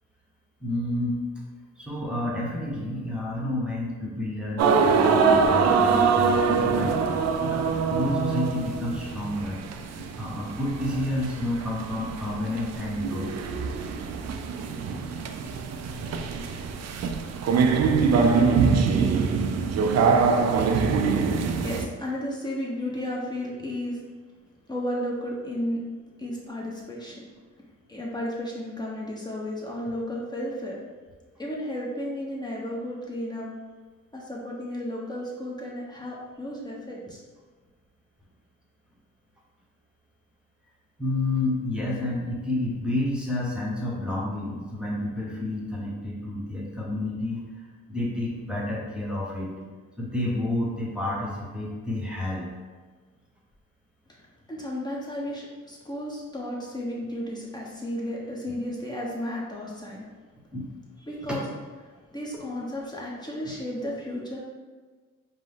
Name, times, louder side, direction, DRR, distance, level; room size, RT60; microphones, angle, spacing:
voice 1, 0.6-1.2 1.8-9.6 9.9-13.3 19.0-19.1 21.2-21.4 41.0-47.4 47.9-49.5 50.0-52.5 60.5-60.7, left 1 dB, 5° right, -5 dB, 1.2 m, -30 dB
sound 1, 4.6-21.9, right 5 dB, 55° right, 0.5 m, -24 dB
voice 2, 21.2-24.0 24.7-25.8 26.2-27.3 27.9-30.8 31.4-33.5 34.1-37.2 54.1-60.1 61.1-61.4 62.1-64.4, left 1 dB, 15° left, -5 dB, 1.1 m, -33 dB
5.1 x 2.2 x 3.7 m, 1.4 s
cardioid pair, 80°, 30 cm